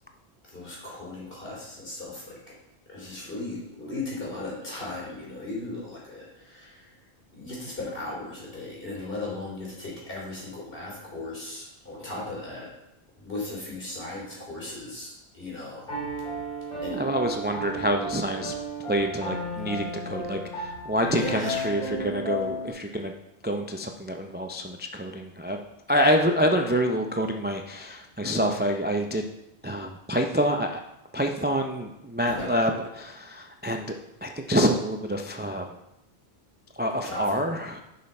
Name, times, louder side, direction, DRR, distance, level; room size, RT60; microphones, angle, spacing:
voice 1, 0.4-2.5 2.9-7.1 7.3-12.7 13.2-15.9 16.5-17.1 21.1-21.7 22.8-23.0 28.2-28.5 32.3-32.5 37.0-37.4, left 2 dB, 60° left, -5 dB, 3.4 m, -37 dB
Piano, 15.9-22.7, right 1 dB, 5° left, 3.7 m, -33 dB
voice 2, 16.9-18.5 18.9-23.1 23.4-25.6 25.9-29.3 29.6-30.8 31.1-33.9 34.2-35.8 36.7-37.8, equal, 15° right, 4 dB, 0.4 m, -27 dB
10.5 x 5.5 x 4.3 m, 0.89 s
omnidirectional pair, 1.1 m